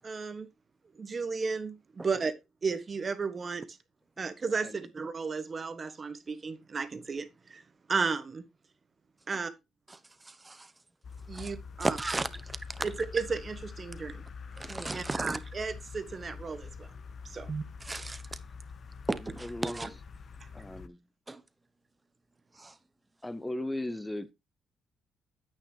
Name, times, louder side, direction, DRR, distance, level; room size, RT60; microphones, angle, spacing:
voice 1, 0.0-0.5 0.9-2.3 2.6-3.6 4.2-7.6 7.9-8.4 9.3-9.5 11.3-12.0 12.8-14.2 14.9-16.9 17.2-17.6, right 4 dB, 35° right, 1.3 m, -34 dB
voice 2, 9.9-10.7 11.3-11.5 11.8-12.9 14.6-15.4 17.8-18.4 19.1-19.9 21.3-21.4 22.5-22.8, right 2 dB, 20° right, 1.0 m, -35 dB
sound 1, 11.0-20.9, left 5 dB, 50° left, 0.9 m, -45 dB
voice 3, 19.4-19.9 20.5-21.0 23.2-24.3, left 1 dB, 10° left, 0.8 m, -37 dB
9.4 x 8.9 x 2.9 m
cardioid pair, 90°, 0 cm